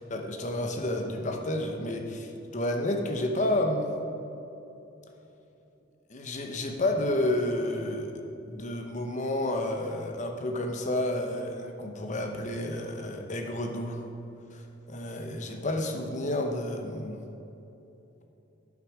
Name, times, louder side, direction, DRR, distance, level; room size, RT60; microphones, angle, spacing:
voice 1, 0.1-4.0 6.1-14.0 14.5-17.2, left 1 dB, 40° left, 3 dB, 0.8 m, -30 dB
10.5 x 6.2 x 4.7 m, 2.9 s
head